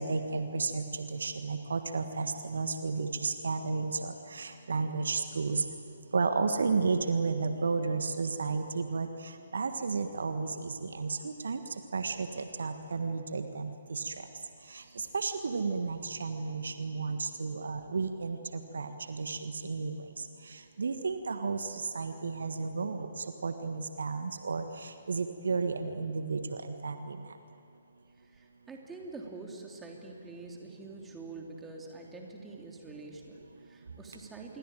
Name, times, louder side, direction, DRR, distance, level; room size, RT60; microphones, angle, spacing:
voice 1, 0.0-5.6 6.1-9.1 9.5-11.6 11.9-14.1 15.1-18.4 18.7-19.9 20.8-21.7 21.9-23.1 23.4-24.6 25.1-27.2, right 4 dB, 60° right, 8 dB, 1.5 m, -32 dB
voice 2, 28.2-34.6, right 3 dB, 10° right, 1 dB, 3.2 m, -46 dB
27.0 x 23.0 x 9.1 m, 2.6 s
figure-of-eight pair, 130°, 0 cm